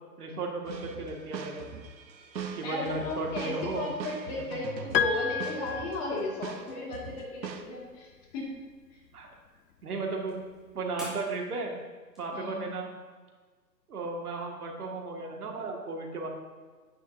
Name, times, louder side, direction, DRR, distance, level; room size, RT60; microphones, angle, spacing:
voice 1, 0.2-1.8 2.5-3.8 9.1-9.3 9.8-10.4 10.7-11.7 12.2-12.9 13.9-16.3, right 3 dB, 60° right, 1 dB, 2.0 m, -35 dB
sound 1, 0.6-6.1 6.4-7.6, right 6 dB, 85° right, 1.0 m, -41 dB
voice 2, 2.6-8.5 12.3-12.7, left 2 dB, 25° left, -2 dB, 2.0 m, -35 dB
Piano, 4.9-6.6, left 8 dB, 85° left, 0.6 m, -31 dB
sound 2, 8.1-13.2, equal, ahead, 2.1 m, -51 dB
10.5 x 8.4 x 2.7 m, 1.5 s
hypercardioid pair, 140°, 49 cm